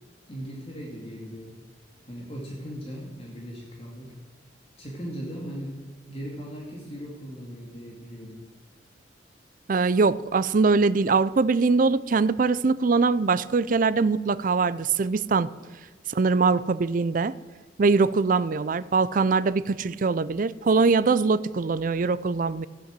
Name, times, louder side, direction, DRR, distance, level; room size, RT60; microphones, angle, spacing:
voice 1, 0.3-1.6 2.0-4.1 4.8-5.8 6.1-8.4, equal, 35° left, -2 dB, 2.5 m, -38 dB
voice 2, 9.7-15.5 16.1-17.3 17.8-22.7, right 4 dB, 50° right, 17 dB, 0.4 m, -22 dB
15.0 x 8.5 x 7.5 m, 1.5 s
head